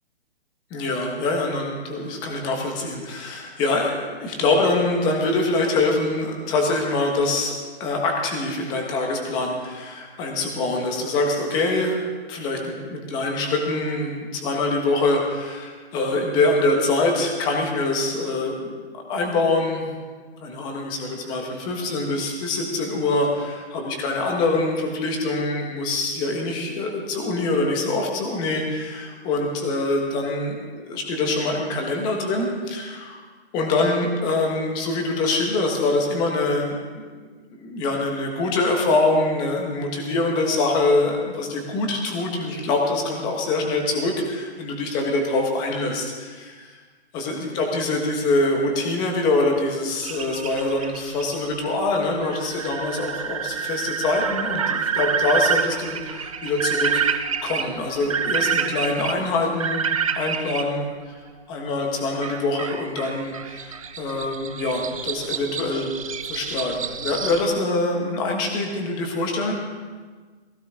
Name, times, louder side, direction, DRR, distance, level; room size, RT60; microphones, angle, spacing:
voice 1, 0.7-7.5 7.8-12.0 12.3-19.8 20.4-33.2 33.5-46.8 47.1-57.0 57.4-59.9 60.1-60.9 61.5-65.9 66.2-69.5, left 2 dB, 15° left, 1 dB, 1.4 m, -24 dB
sound 1, 50.0-60.6 62.2-67.4, right 7 dB, 30° right, 0.6 m, -28 dB
18.0 x 16.5 x 3.8 m, 1.5 s
hypercardioid pair, 170°, 33 cm